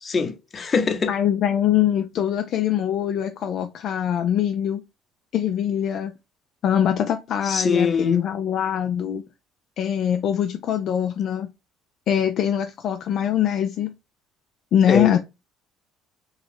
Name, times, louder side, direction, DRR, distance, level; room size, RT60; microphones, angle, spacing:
voice 1, 0.0-1.1 7.5-8.2 14.9-15.2, left 5 dB, 35° left, 0.8 m, -23 dB
voice 2, 1.1-4.8 5.3-6.1 6.6-9.2 9.8-11.5 12.1-13.9 14.7-15.2, left 9 dB, 60° left, 0.3 m, -23 dB
3.0 x 2.3 x 3.4 m
hypercardioid pair, 65°, 0 cm